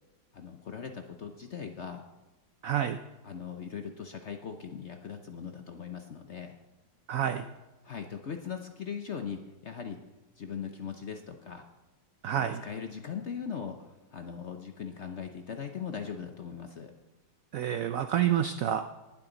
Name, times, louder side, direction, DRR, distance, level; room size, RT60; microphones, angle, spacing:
voice 1, 0.3-2.1 3.2-6.6 7.8-10.0 10.4-11.6 12.3-16.9, left 7 dB, 55° left, 6 dB, 0.8 m, -40 dB
voice 2, 2.6-3.0 7.1-7.5 12.2-12.6 17.5-18.8, right 10 dB, 75° right, 9 dB, 0.7 m, -28 dB
19.5 x 7.6 x 3.9 m, 1.1 s
omnidirectional pair, 2.0 m